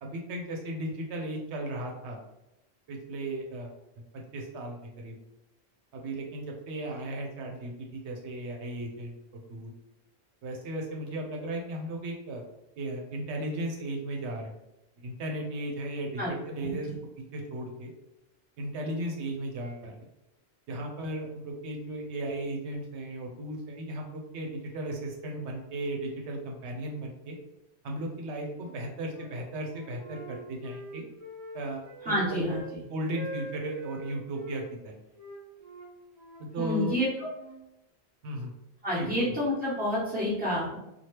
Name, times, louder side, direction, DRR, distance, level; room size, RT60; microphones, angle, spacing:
voice 1, 0.0-2.2 2.9-3.7 4.1-5.2 5.9-9.7 10.4-12.4 12.8-14.5 15.0-16.9 17.2-17.9 18.6-20.0 20.7-27.4 27.8-31.0 31.5-32.5 32.9-35.0 36.4-37.0 38.2-38.5 38.9-39.3, right 1 dB, 85° right, 1 dB, 0.9 m, -36 dB
Wind instrument woodwind instrument, 28.5-29.3 29.7-32.7 33.1-34.6 35.1-37.6, right 1 dB, 40° right, 0.7 m, -45 dB
voice 2, 32.0-32.6 36.6-37.3 38.8-40.8, left 1 dB, 10° right, -8 dB, 1.0 m, -29 dB
2.8 x 2.3 x 3.2 m, 0.89 s
omnidirectional pair, 1.1 m